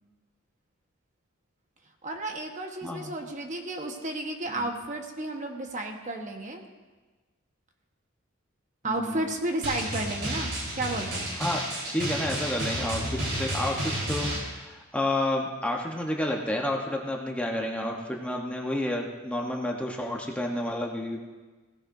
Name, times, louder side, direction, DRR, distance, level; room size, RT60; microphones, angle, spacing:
voice 1, 2.0-6.6 8.8-10.5 10.8-11.3, right 2 dB, 35° right, 2 dB, 1.2 m, -32 dB
voice 2, 2.8-3.1 4.6-4.7 8.8-9.2 11.4-11.6 11.9-21.2, left 1 dB, 5° left, 0 dB, 0.9 m, -30 dB
Drum, 9.6-14.4, right 1 dB, 55° right, 4.0 m, -31 dB
17.0 x 16.5 x 2.6 m, 1.3 s
head